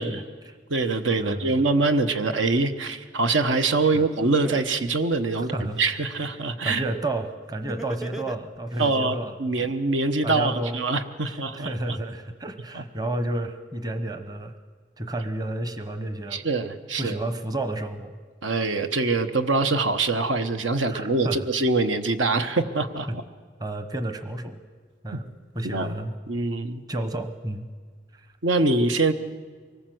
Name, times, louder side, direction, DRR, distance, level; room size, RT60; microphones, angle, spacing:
voice 1, 0.0-0.6 1.2-1.6 3.9-4.1 5.3-5.8 6.4-9.7 10.2-10.8 11.6-14.5 15.0-16.4 17.0-18.2 20.9-21.5 23.1-23.2 23.6-24.6 25.0-26.1 26.9-27.7 28.1-28.3, right 1 dB, 20° right, 10 dB, 1.0 m, -31 dB
voice 2, 0.7-6.8 8.8-12.0 12.7-12.8 16.3-17.2 18.4-23.2 25.1-25.2 25.6-25.9 26.3-26.8 28.4-29.1, right 3 dB, 75° right, 9 dB, 1.1 m, -24 dB
Laughter, 3.9-4.0 4.4-5.9 7.7-8.9, right 2 dB, ahead, 0.6 m, -36 dB
24.5 x 19.5 x 7.9 m, 1.5 s
head